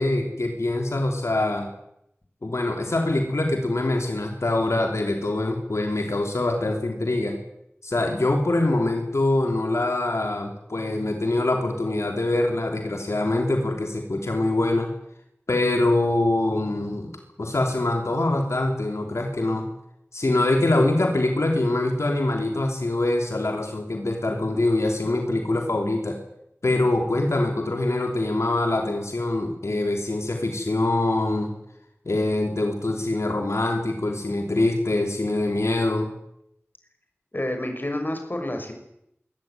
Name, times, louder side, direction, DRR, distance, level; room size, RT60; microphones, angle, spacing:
voice 1, 0.0-1.7 2.4-7.3 7.8-14.9 15.5-17.1 17.4-19.7 20.1-26.2 26.6-31.5 32.0-36.1, left 2 dB, 90° left, 3 dB, 3.2 m, -24 dB
voice 2, 37.3-38.7, left 1 dB, 45° left, 5 dB, 6.3 m, -29 dB
22.5 x 16.5 x 9.5 m, 0.78 s
wide cardioid pair, 40°, 5 cm